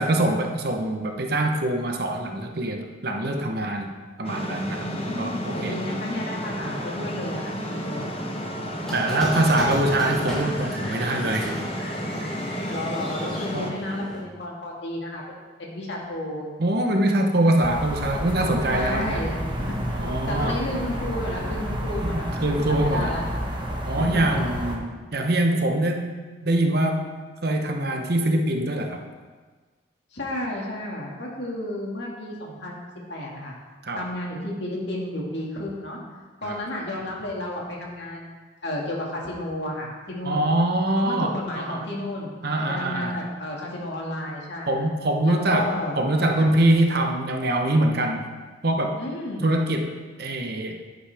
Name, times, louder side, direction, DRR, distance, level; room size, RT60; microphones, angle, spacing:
voice 1, 0.0-6.0 8.9-11.6 13.5-13.8 16.6-19.2 20.0-20.6 22.0-23.1 23.9-27.1 27.4-29.0 33.8-34.1 36.4-36.6 40.2-41.8 42.4-43.2 44.7-48.3 48.6-49.0 49.4-49.9 50.2-50.8, right 1 dB, 55° right, 3 dB, 1.0 m, -24 dB
sound 1, 4.2-13.7, equal, 30° left, 1.0 m, -32 dB
voice 2, 4.8-8.1 12.7-16.4 18.7-23.2 24.0-24.2 30.1-33.6 33.9-36.0 36.4-38.4 38.6-40.5 41.0-42.3 42.7-44.8 45.2-46.0 46.4-46.5 49.0-49.5, left 1 dB, 60° left, -2 dB, 2.1 m, -32 dB
Squeak, 8.8-14.2, equal, ahead, 3.1 m, -34 dB
sound 2, 17.6-24.8, equal, 25° right, 1.2 m, -30 dB
10.5 x 9.6 x 3.5 m, 1.4 s
head